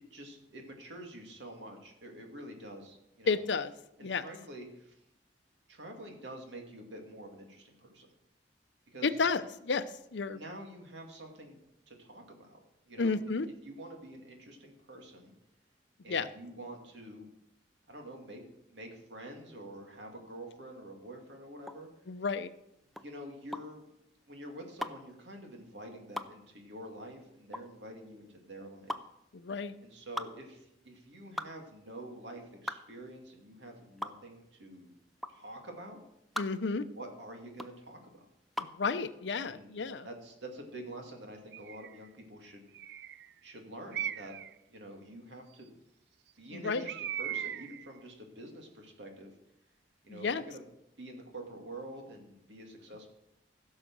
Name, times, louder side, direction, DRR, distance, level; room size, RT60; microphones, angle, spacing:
voice 1, 0.1-3.4 4.0-5.0 5.7-8.1 8.9-9.1 10.3-11.6 11.9-12.6 12.9-13.2 13.6-15.3 16.0-17.3 17.9-18.4 18.7-21.9 23.0-23.9 24.3-29.0 29.8-34.9 35.3-36.0 36.8-38.2 39.5-42.7 43.4-44.4 44.7-45.7 46.4-49.3 50.0-50.6 51.0-53.1, right 1 dB, 80° right, 2 dB, 2.5 m, -47 dB
voice 2, 3.3-3.7 4.0-4.2 9.0-10.4 13.0-13.5 16.1-16.3 22.1-22.5 29.3-29.8 36.4-36.9 38.6-40.1 46.5-46.9 50.1-50.4, left 4 dB, 75° left, 13 dB, 0.6 m, -32 dB
sound 1, 21.6-38.8, left 1 dB, ahead, 0.5 m, -42 dB
Bird, 41.5-42.0 42.7-43.3 43.9-44.5 46.9-47.9, right 10 dB, 65° right, 0.4 m, -38 dB
15.5 x 6.5 x 6.1 m, 0.82 s
head